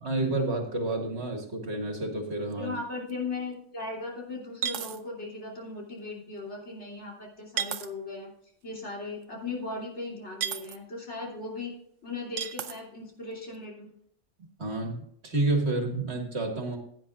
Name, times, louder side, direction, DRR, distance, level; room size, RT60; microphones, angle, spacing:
voice 1, 0.0-2.7 14.6-15.0 15.2-16.8, right 2 dB, 60° right, 3 dB, 2.1 m, -29 dB
sound 1, 2.5-2.6 3.1-3.2 4.6-5.0 7.6-7.9 10.4-10.8 12.4-12.8, right 8 dB, 85° right, 1.1 m, -32 dB
voice 2, 2.6-8.3 8.6-11.7 12.0-13.9, left 3 dB, 65° left, -3 dB, 3.3 m, -37 dB
16.0 x 9.2 x 2.4 m, 0.67 s
omnidirectional pair, 1.2 m